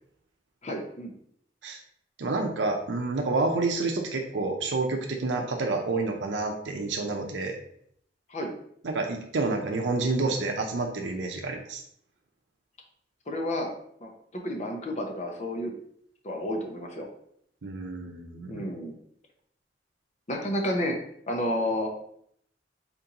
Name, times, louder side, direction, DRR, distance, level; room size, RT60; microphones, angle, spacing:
voice 1, 0.6-1.1 8.3-8.5 13.3-13.7 14.0-15.7 16.2-17.1 18.5-19.0 20.3-21.0 21.3-21.9, left 1 dB, 40° left, 2 dB, 0.7 m, -31 dB
voice 2, 2.2-7.6 8.8-11.8 17.6-18.6, right 3 dB, 85° right, 2 dB, 0.6 m, -29 dB
4.4 x 3.9 x 2.8 m, 0.68 s
head